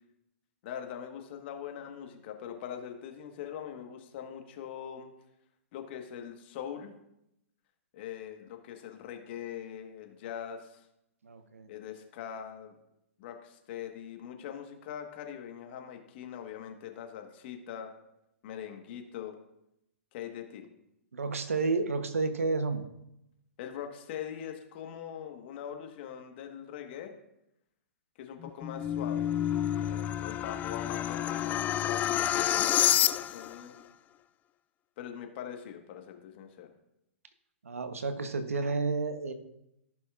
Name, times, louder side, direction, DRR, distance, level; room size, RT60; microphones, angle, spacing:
voice 1, 0.6-5.1 5.7-6.9 7.9-10.8 11.7-12.8 13.2-17.9 18.4-19.3 20.1-20.6 23.6-27.1 28.2-29.3 29.8-33.7 35.0-36.7, left 9 dB, 50° left, 4 dB, 1.4 m, -42 dB
voice 2, 11.2-11.7 21.1-22.8 37.6-39.3, right 3 dB, 85° right, 9 dB, 1.0 m, -31 dB
sound 1, 28.4-33.6, left 11 dB, 20° left, 0.3 m, -29 dB
15.0 x 5.9 x 2.5 m, 0.84 s
hypercardioid pair, 125°, 7 cm